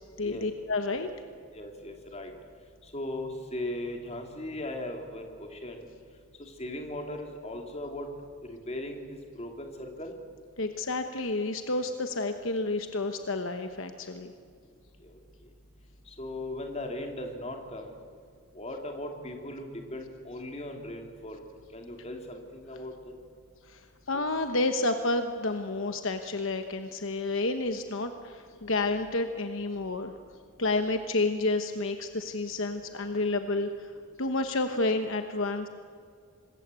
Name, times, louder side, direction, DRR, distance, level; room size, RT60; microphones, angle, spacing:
voice 1, 0.2-1.1 10.6-14.3 23.6-30.1 30.6-33.9 34.2-35.7, left 2 dB, 60° left, 7 dB, 1.1 m, -30 dB
voice 2, 1.5-2.3 2.8-5.9 6.4-8.1 8.5-10.2 15.0-15.2 16.1-18.0 18.5-21.4 21.7-23.1 24.1-24.2, left 1 dB, 30° left, 3 dB, 2.9 m, -38 dB
26.0 x 21.5 x 8.4 m, 2.2 s
head